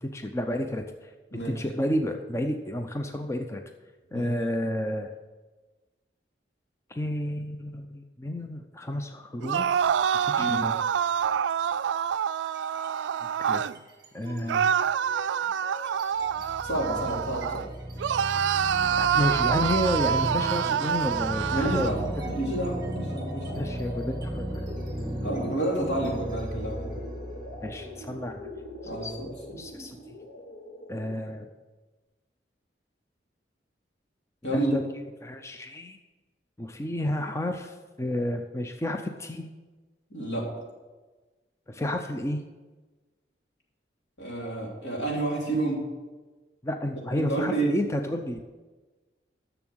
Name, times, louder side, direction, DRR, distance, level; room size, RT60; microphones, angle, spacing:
voice 1, 0.0-1.1 1.4-3.6 4.1-5.1 6.9-9.9 10.2-10.7 13.4-13.6 14.1-14.7 18.9-21.9 23.5-24.6 25.0-25.3 27.6-28.5 29.0-29.1 29.6-30.0 30.9-31.5 34.5-34.8 35.2-36.0 36.6-39.5 41.7-42.4 46.6-48.4, left 1 dB, 15° left, 5 dB, 0.5 m, -31 dB
sound 1, 9.4-13.8 14.5-17.7 18.0-22.0, right 8 dB, 85° right, 0.3 m, -26 dB
voice 2, 10.4-10.7 16.6-17.7 21.5-23.6 25.2-27.0 28.8-29.6 34.4-34.7 40.1-40.5 44.2-45.9 47.1-47.8, right 2 dB, 80° left, -2 dB, 3.1 m, -30 dB
sound 2, 12.4-13.0 13.3-29.9, right 1 dB, 25° right, 1.7 m, -36 dB
sound 3, 21.4-31.4, left 1 dB, 50° left, 2.1 m, -43 dB
11.0 x 6.9 x 6.2 m, 1.3 s
head